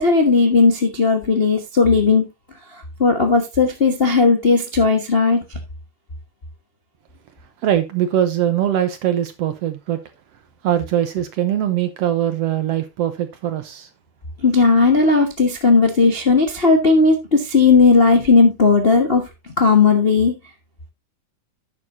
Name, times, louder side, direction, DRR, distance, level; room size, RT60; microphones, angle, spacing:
voice 1, 0.0-2.2 3.0-5.4 14.4-19.2 19.6-20.3, left 4 dB, 50° left, 0.6 m, -15 dB
voice 2, 7.6-10.0 10.6-13.9, right 11 dB, 70° right, 1.6 m, -21 dB
11.0 x 8.8 x 2.7 m
omnidirectional pair, 3.6 m